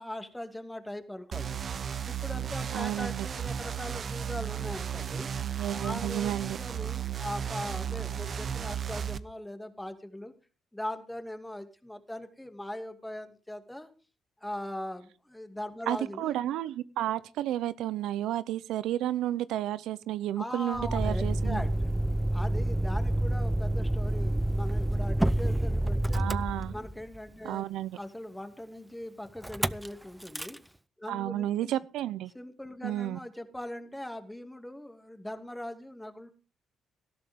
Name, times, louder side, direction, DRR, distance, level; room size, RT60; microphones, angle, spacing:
voice 1, 0.0-1.6 2.0-5.3 5.8-10.3 10.7-13.9 14.4-16.4 20.4-21.9 22.3-26.3 26.7-27.6 27.9-30.6 31.0-31.7 32.3-36.3, left 1 dB, 5° left, 7 dB, 2.5 m, -40 dB
sound 1, 1.3-9.2, right 8 dB, 50° right, 0.9 m, -34 dB
voice 2, 2.7-3.3 5.4-6.6 15.9-21.6 26.1-26.7 27.4-28.0 31.1-32.3 32.8-33.2, right 13 dB, 85° right, 17 dB, 0.6 m, -32 dB
Motor vehicle (road), 20.7-27.2 29.4-29.9 30.2-30.6, right 1 dB, 10° right, 0.6 m, -28 dB
18.5 x 13.0 x 3.7 m, 0.34 s
cardioid pair, 90°, 0 cm